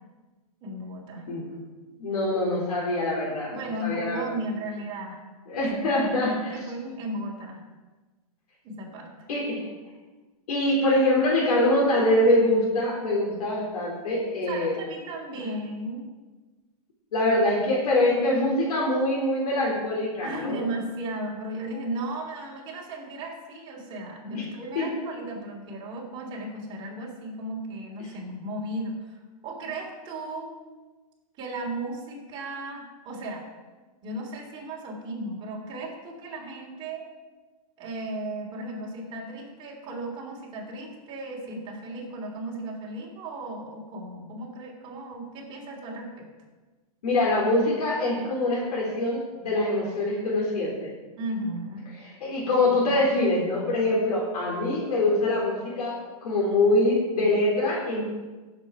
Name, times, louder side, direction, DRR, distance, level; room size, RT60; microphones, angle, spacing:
voice 1, 0.6-1.2 3.5-5.2 5.9-7.6 8.6-9.1 14.5-16.0 20.2-29.2 29.4-30.5 31.4-33.4 34.0-37.1 37.8-46.3 51.2-51.9, right 1 dB, 25° right, -2 dB, 3.2 m, -35 dB
voice 2, 2.0-3.5 3.8-4.2 5.5-6.3 9.3-9.6 10.5-14.7 17.1-20.6 24.3-24.4 24.8-24.9 47.0-50.9 52.2-56.0 56.2-58.0, left 1 dB, 75° left, -4 dB, 4.0 m, -24 dB
17.0 x 7.4 x 4.9 m, 1.2 s
hypercardioid pair, 155°, 20 cm